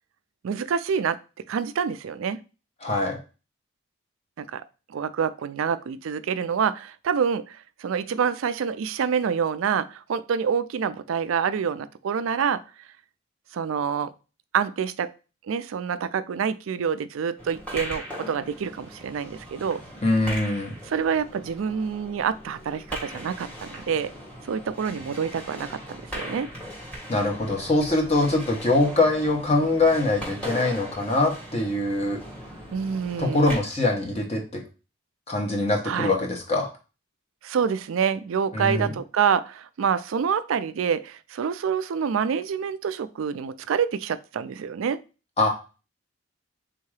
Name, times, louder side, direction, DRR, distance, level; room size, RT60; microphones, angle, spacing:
voice 1, 0.4-1.2 1.5-2.4 4.4-4.6 4.9-12.6 13.5-14.1 14.5-15.1 15.5-19.8 20.9-24.1 24.5-25.8 26.1-26.5 32.7-33.5 35.8-36.1 37.4-45.0, right 7 dB, 80° right, 14 dB, 0.4 m, -27 dB
voice 2, 2.8-3.2 20.0-20.7 27.1-32.2 33.2-34.6 35.3-36.7 38.5-38.9 45.4-45.5, left 2 dB, 30° left, 1 dB, 1.1 m, -23 dB
sound 1, 17.4-33.6, equal, 5° left, 1.4 m, -39 dB
3.7 x 2.8 x 4.7 m, 0.33 s
head